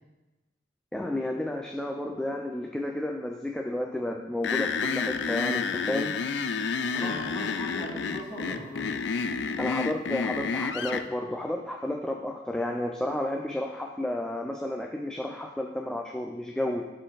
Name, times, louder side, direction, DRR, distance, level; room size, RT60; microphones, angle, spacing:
voice 1, 0.9-6.2 9.6-16.9, left 1 dB, 5° left, 1 dB, 0.4 m, -32 dB
sound 1, 4.4-11.1, left 5 dB, 70° left, 0.4 m, -30 dB
voice 2, 6.9-9.2, equal, 20° left, -7 dB, 2.6 m, -38 dB
12.0 x 4.3 x 4.0 m, 1.1 s
head